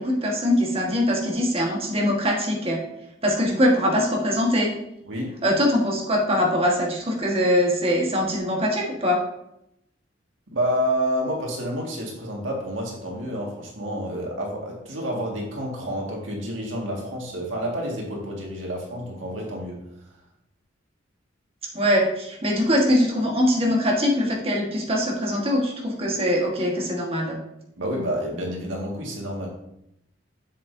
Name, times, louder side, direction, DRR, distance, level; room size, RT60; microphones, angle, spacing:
voice 1, 0.0-2.8 3.2-4.7 5.4-9.2 21.7-27.4, equal, 30° right, -1 dB, 1.5 m, -22 dB
voice 2, 5.1-5.4 10.5-19.8 27.8-29.5, equal, 90° right, -1 dB, 1.9 m, -29 dB
7.3 x 7.2 x 2.7 m, 0.80 s
head